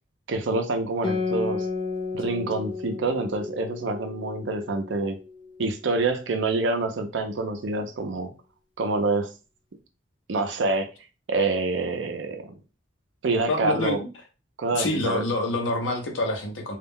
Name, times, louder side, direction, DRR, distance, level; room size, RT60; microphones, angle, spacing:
voice 1, 0.3-1.7 2.1-5.2 5.6-8.3 8.8-9.3 10.3-10.9 11.3-12.6 13.2-14.0 14.6-15.2, right 3 dB, 75° right, 6 dB, 0.5 m, -26 dB
Guitar, 1.0-6.0, left 4 dB, 25° left, 0.4 m, -33 dB
voice 2, 13.5-14.1 14.7-16.8, left 2 dB, 90° left, 3 dB, 0.7 m, -26 dB
2.3 x 2.1 x 3.5 m, 0.32 s
head